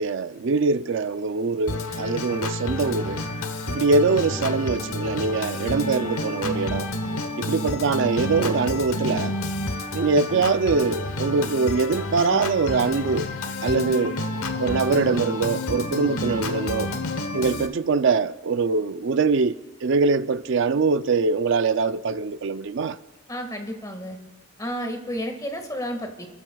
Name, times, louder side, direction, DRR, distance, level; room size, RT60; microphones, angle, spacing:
voice 1, 0.0-3.2 3.7-6.9 7.4-9.4 9.9-13.3 13.6-14.2 14.6-16.9 17.3-19.6 19.8-23.0, right 4 dB, 60° right, 0.4 m, -23 dB
Organ, 1.7-17.7, left 2 dB, 90° left, 1.1 m, -29 dB
voice 2, 23.3-24.2 24.6-26.3, equal, 15° left, 1.7 m, -31 dB
29.5 x 13.5 x 2.3 m
head